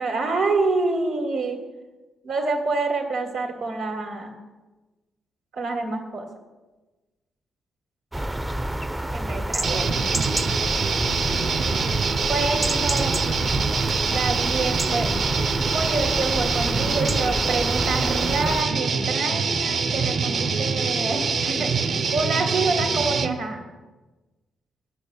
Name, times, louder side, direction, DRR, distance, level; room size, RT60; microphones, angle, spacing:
voice 1, 0.0-1.6 2.2-4.4 5.5-6.3 9.1-9.9 12.3-13.1 14.1-15.1 15.6-23.6, right 3 dB, 85° right, 0 dB, 2.0 m, -27 dB
sound 1, 8.1-18.6, right 1 dB, 15° right, 0.5 m, -29 dB
sound 2, 9.6-23.3, right 5 dB, 60° right, 1.0 m, -25 dB
11.0 x 6.1 x 8.6 m, 1.2 s
hypercardioid pair, 50°, 0 cm